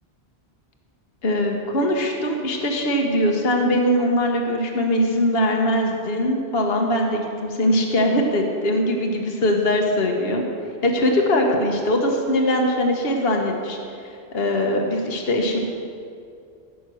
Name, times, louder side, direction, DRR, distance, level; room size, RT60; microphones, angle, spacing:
voice 1, 1.2-10.4 10.8-15.6, left 1 dB, 65° left, 1 dB, 1.4 m, -21 dB
15.5 x 6.2 x 6.2 m, 2.5 s
omnidirectional pair, 1.1 m